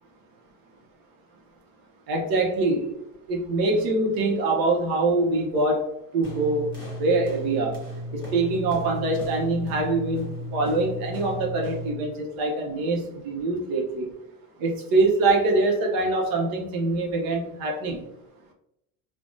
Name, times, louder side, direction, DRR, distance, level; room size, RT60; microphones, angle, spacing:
voice 1, 2.1-3.0 3.3-5.8 6.1-6.7 7.0-7.8 8.1-14.1 14.6-18.0, right 2 dB, 50° right, 0 dB, 0.9 m, -24 dB
sound 1, 6.2-12.0, left 1 dB, 10° left, 1.2 m, -35 dB
3.3 x 2.2 x 2.6 m, 0.83 s
cardioid pair, 150°, 44 cm